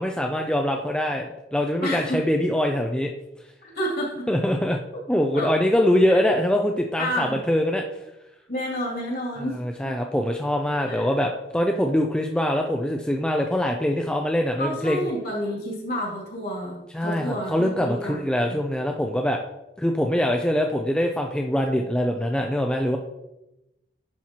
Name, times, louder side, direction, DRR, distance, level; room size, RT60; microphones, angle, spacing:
voice 1, 0.0-3.1 4.3-4.8 5.1-7.8 9.5-15.1 16.9-19.4 19.8-23.0, equal, 5° left, 2 dB, 0.3 m, -23 dB
voice 2, 1.8-2.2 3.6-4.3 5.3-5.5 6.1-6.2 7.0-7.4 8.5-9.9 10.9-11.1 14.6-18.2, equal, 60° left, -3 dB, 2.4 m, -30 dB
10.5 x 4.4 x 2.9 m, 0.93 s
head